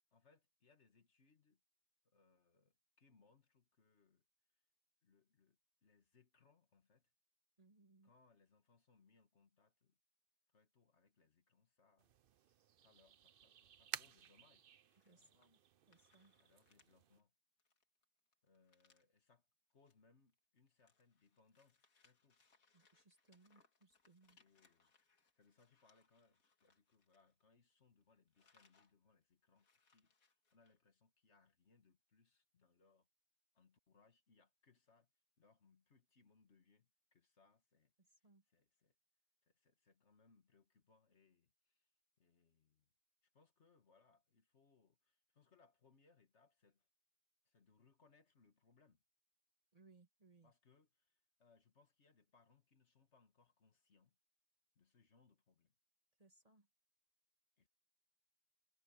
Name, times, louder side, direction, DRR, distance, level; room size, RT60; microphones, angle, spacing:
voice 1, 0.1-1.6 2.0-4.2 4.5-4.6 5.0-7.1 8.0-10.0 10.5-12.1 12.4-15.5 16.4-17.3 18.4-22.4 24.3-30.1 30.5-33.1 33.5-35.1 35.4-38.9 39.4-41.9 42.2-42.9 43.2-46.9 47.5-49.0 50.4-54.2 54.8-55.7 57.6-57.7, left 4 dB, 55° left, 1.9 m, -74 dB
voice 2, 7.6-8.1 15.0-15.6 15.9-16.3 22.7-24.4 38.0-38.4 49.7-50.5 56.2-56.7, right 3 dB, 25° right, 1.7 m, -69 dB
sound 1, 12.0-17.2, right 9 dB, 55° right, 0.7 m, -55 dB
sound 2, 14.8-15.6 15.9-16.9 17.2-17.3 17.6-19.2 19.7-19.9 20.3-27.7 28.0-28.9 29.2-29.3 29.5-30.8, left 4 dB, 80° left, 2.5 m, -76 dB
omnidirectional pair, 1.5 m